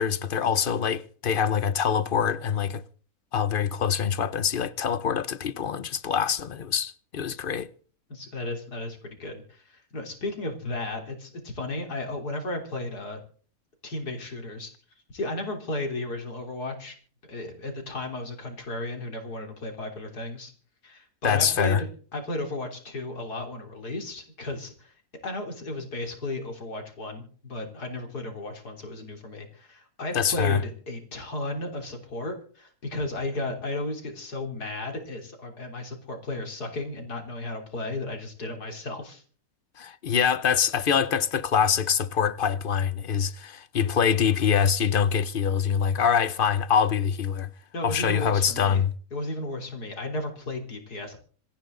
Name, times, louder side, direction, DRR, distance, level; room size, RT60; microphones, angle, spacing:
voice 1, 0.0-2.8 3.3-7.7 21.2-21.8 30.1-30.6 39.8-47.5 47.8-48.9, left 7 dB, 45° left, 0.8 m, -24 dB
voice 2, 8.1-13.2 13.8-14.7 15.1-16.9 17.3-20.5 20.8-24.9 25.2-39.2 47.7-48.8 49.1-51.2, left 2 dB, 90° left, 4.0 m, -34 dB
27.0 x 10.5 x 3.9 m
omnidirectional pair, 1.6 m